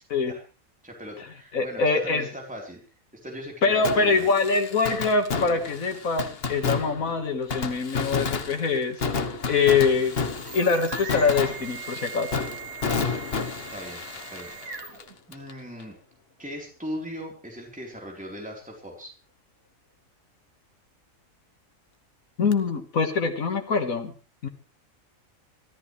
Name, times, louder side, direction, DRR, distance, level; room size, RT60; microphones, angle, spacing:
voice 1, 0.8-2.8 3.1-4.3 13.5-15.0 15.3-16.0 16.4-19.1, equal, 5° right, -1 dB, 4.0 m, -39 dB
voice 2, 1.5-2.3 3.6-9.0 9.5-10.2 10.5-12.3 22.4-24.1 24.4-24.5, left 4 dB, 85° left, 4 dB, 2.1 m, -24 dB
Fireworks, 3.8-15.5 15.8-15.9 22.5-22.6, left 5 dB, 45° left, 1.3 m, -31 dB
sound 1, 9.9-15.2, right 5 dB, 85° right, 3.2 m, -40 dB
24.0 x 14.0 x 3.3 m, 0.35 s
omnidirectional pair, 1.4 m